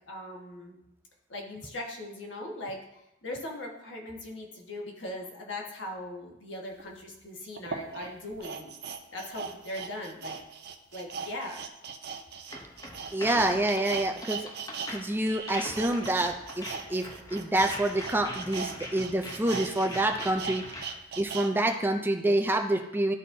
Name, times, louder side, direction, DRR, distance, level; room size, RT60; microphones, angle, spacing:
voice 1, 0.1-0.8 1.3-8.7 9.1-10.4 10.9-11.6, left 1 dB, 70° left, -1 dB, 1.5 m, -39 dB
sound 1, 6.8-6.9 7.6-14.9 15.2-21.5 21.9-22.0, right 6 dB, 60° right, 0.6 m, -39 dB
sound 2, 12.5-21.0, left 1 dB, 20° left, 0.8 m, -42 dB
voice 2, 13.1-14.5 14.9-17.1 17.3-20.6 21.2-23.1, right 1 dB, 10° right, 5 dB, 0.4 m, -27 dB
13.0 x 4.3 x 2.7 m, 0.87 s
head